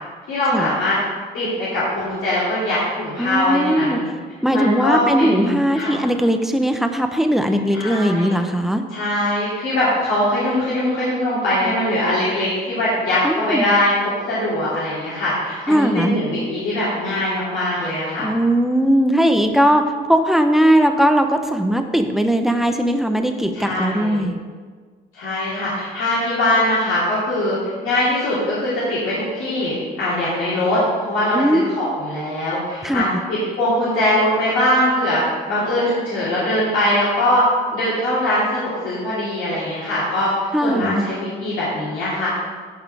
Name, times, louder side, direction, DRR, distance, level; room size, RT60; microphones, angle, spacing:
voice 1, 0.3-1.0 1.3-4.0 4.5-5.9 7.7-8.3 8.9-18.3 23.5-24.3 25.1-35.2 35.5-40.3 40.6-42.3, left 1 dB, 85° left, -10 dB, 2.7 m, -21 dB
voice 2, 3.2-4.0 4.4-8.8 13.2-13.7 15.7-16.2 18.2-24.4 31.3-31.6 32.8-33.0 40.5-41.1, equal, ahead, 6 dB, 0.8 m, -18 dB
11.5 x 4.8 x 4.8 m, 1.5 s
cardioid pair, 90°, 20 cm